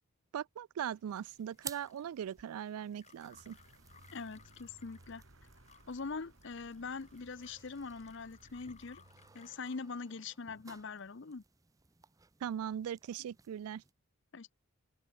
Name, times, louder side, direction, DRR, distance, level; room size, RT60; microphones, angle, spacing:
voice 1, 0.3-3.6 12.4-13.8, right 9 dB, 85° right, 0.3 m, -40 dB
sound 1, 0.8-9.8, left 6 dB, 30° left, 5.0 m, -64 dB
sound 2, 1.1-13.9, right 6 dB, 15° right, 0.5 m, -56 dB
Vehicle, 3.3-9.7, right 1 dB, 65° right, 2.5 m, -61 dB
voice 2, 4.1-5.2 5.9-9.0 9.3-11.4 14.3-14.5, left 4 dB, 55° left, 0.7 m, -43 dB
open air
head